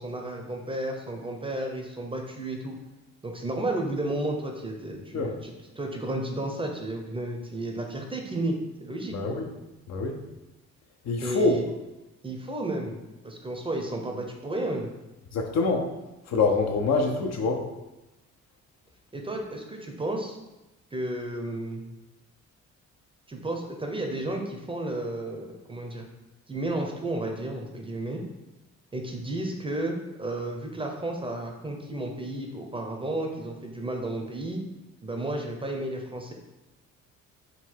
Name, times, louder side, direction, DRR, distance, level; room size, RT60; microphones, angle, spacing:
voice 1, 0.0-2.8 3.2-8.5 8.8-9.2 11.2-11.7 12.2-13.0 13.2-14.9 19.1-20.4 20.9-21.8 23.3-26.1 26.5-28.2 28.9-34.6 35.0-36.3, right 1 dB, 15° right, 2 dB, 0.6 m, -32 dB
voice 2, 9.1-9.5 9.9-10.2 11.0-11.6 15.3-15.9 16.3-17.6, left 3 dB, 60° left, 3 dB, 0.7 m, -25 dB
3.9 x 2.3 x 4.4 m, 1.0 s
cardioid pair, 90°, 30 cm